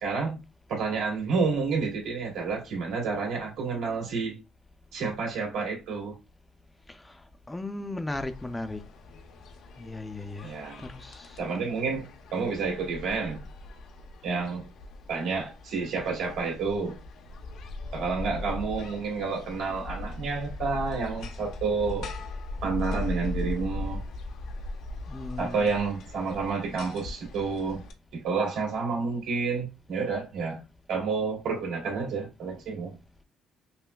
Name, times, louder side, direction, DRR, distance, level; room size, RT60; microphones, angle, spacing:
voice 1, 0.0-0.4 0.7-4.4 4.9-6.1 10.4-10.8 11.4-13.4 14.2-14.6 15.1-16.9 17.9-22.1 22.6-24.0 25.4-27.8 28.1-30.6 30.9-33.0, right 4 dB, 80° right, 1.9 m, -29 dB
voice 2, 6.9-8.8 9.8-11.4 25.1-25.7, left 2 dB, 15° left, 0.4 m, -37 dB
sound 1, 8.1-27.9, left 2 dB, 75° left, 0.6 m, -39 dB
5.5 x 2.1 x 2.2 m
cardioid pair, 95°, 0 cm